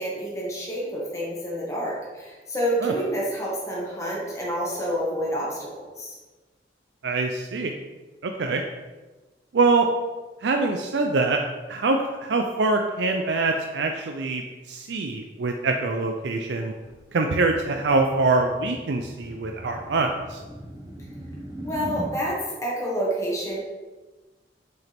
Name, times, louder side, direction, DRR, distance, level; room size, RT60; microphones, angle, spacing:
voice 1, 0.0-5.7 6.0-6.1 21.6-23.6, equal, 20° left, -6 dB, 1.6 m, -28 dB
voice 2, 7.0-7.7 8.2-8.6 9.5-9.9 10.4-11.4 11.7-16.7 17.1-20.4, right 3 dB, 85° right, 3 dB, 0.5 m, -24 dB
sound 1, 16.8-22.1, right 1 dB, 20° right, 1.0 m, -39 dB
6.3 x 4.9 x 3.5 m, 1.2 s
head